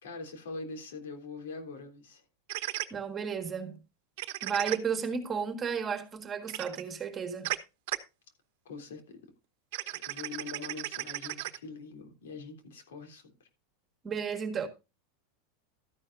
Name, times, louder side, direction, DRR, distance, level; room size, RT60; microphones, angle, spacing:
voice 1, 0.0-2.2 8.6-9.2 9.9-13.5, left 4 dB, 90° left, 3.3 m, -43 dB
sound 1, 2.5-2.9 4.2-4.8 6.5-6.8 7.4-7.6 7.9-8.0 9.7-11.6, right 17 dB, 65° right, 1.0 m, -35 dB
voice 2, 2.9-3.8 4.4-7.5 14.0-14.7, right 6 dB, 20° right, 1.7 m, -33 dB
13.0 x 9.9 x 2.6 m
supercardioid pair, 140°, 0 cm